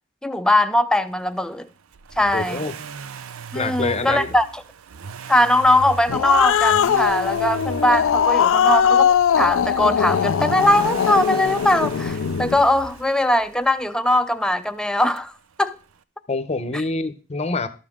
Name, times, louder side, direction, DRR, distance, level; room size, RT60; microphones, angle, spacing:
voice 1, 0.2-1.7 2.2-2.6 3.5-4.6 5.3-15.3 15.6-15.8, left 1 dB, 5° left, 0.5 m, -20 dB
Accelerating revving vroom, 1.9-13.9 15.2-15.3, right 5 dB, 85° right, 0.6 m, -37 dB
voice 2, 2.3-2.7 3.5-4.3 16.3-17.7, left 3 dB, 30° left, 0.8 m, -26 dB
Growling, 5.8-12.6, left 8 dB, 65° left, 0.4 m, -20 dB
12.5 x 7.3 x 3.6 m
head